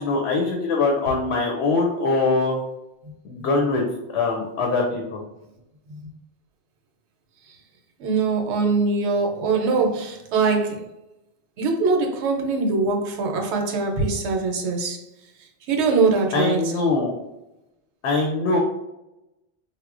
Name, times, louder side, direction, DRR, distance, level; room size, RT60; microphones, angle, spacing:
voice 1, 0.0-2.6 3.2-3.8 4.1-5.2 16.3-17.1 18.0-18.6, left 3 dB, 75° left, 1 dB, 0.8 m, -22 dB
voice 2, 8.0-10.9 11.6-15.0 15.4-16.7, right 4 dB, 75° right, 2 dB, 0.8 m, -23 dB
4.1 x 2.1 x 2.4 m, 0.90 s
omnidirectional pair, 1.2 m